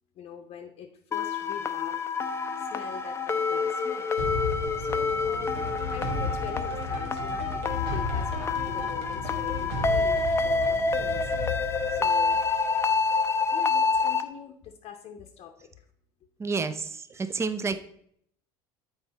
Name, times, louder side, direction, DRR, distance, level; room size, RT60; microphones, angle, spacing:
voice 1, 0.1-2.0 2.6-4.1 4.4-5.6 5.9-7.6 7.9-11.6 11.9-12.4 13.5-15.8, left 8 dB, 50° left, 4 dB, 0.8 m, -43 dB
sound 1, 1.1-14.2, left 4 dB, 20° left, 0.6 m, -27 dB
sound 2, 4.2-13.0, left 2 dB, 85° right, 1.5 m, -34 dB
voice 2, 16.4-17.8, right 4 dB, 20° right, 10 dB, 0.6 m, -30 dB
7.9 x 4.7 x 4.0 m, 0.67 s
supercardioid pair, 95°, 13 cm